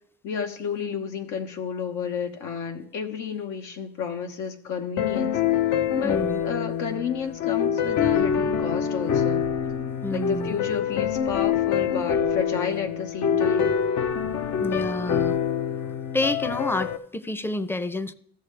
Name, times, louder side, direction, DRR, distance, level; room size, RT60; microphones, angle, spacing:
voice 1, 0.2-5.4 6.0-9.4 10.1-13.7, left 7 dB, 90° left, 4 dB, 1.2 m, -31 dB
sound 1, 5.0-17.0, left 8 dB, 70° left, 0.7 m, -25 dB
voice 2, 6.0-6.4 10.0-10.6 14.6-15.4 16.1-18.1, left 2 dB, 5° left, 14 dB, 0.5 m, -29 dB
14.5 x 6.6 x 3.4 m, 0.66 s
cardioid pair, 90°, 30 cm